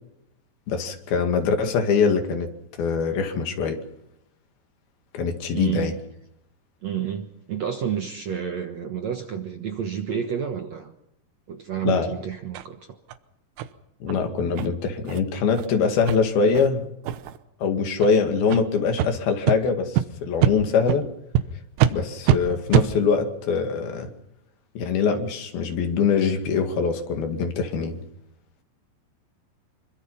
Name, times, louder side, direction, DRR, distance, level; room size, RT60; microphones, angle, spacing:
voice 1, 0.7-3.8 5.1-5.9 11.8-12.1 14.0-16.9 17.6-21.1 21.9-24.1 24.8-28.0, left 5 dB, 65° left, 6 dB, 3.9 m, -23 dB
voice 2, 5.5-5.9 6.8-10.9 11.5-13.0, right 8 dB, 65° right, 5 dB, 1.7 m, -30 dB
sound 1, 12.5-12.7 13.1-13.2 13.6-13.7 14.1-14.2 14.6-14.7 15.1-15.2 15.5-15.7 16.1-16.2 16.6-16.7 17.0-17.4 18.0-18.1 18.5-18.6 19.0-19.1 19.5-19.6 20.0-20.1 20.4-20.5 20.9-21.0 21.3-21.4 21.8-21.9 22.3-22.4 22.7-22.9, right 11 dB, 80° right, 3.2 m, -22 dB
26.0 x 24.0 x 5.6 m, 0.81 s
omnidirectional pair, 4.9 m